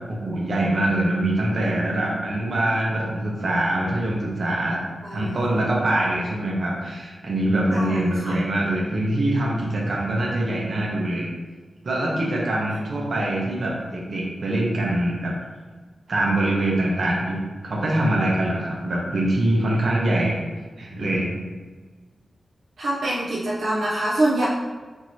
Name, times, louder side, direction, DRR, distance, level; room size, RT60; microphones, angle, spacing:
voice 1, 0.1-4.8 5.1-11.3 11.8-15.3 16.1-20.3 20.8-21.3, right 1 dB, 55° right, -3 dB, 0.9 m, -24 dB
voice 2, 5.0-5.4 7.7-8.3 22.8-24.5, right 1 dB, 75° right, -7 dB, 0.6 m, -25 dB
4.7 x 2.8 x 2.8 m, 1.4 s
wide cardioid pair, 150°, 0 cm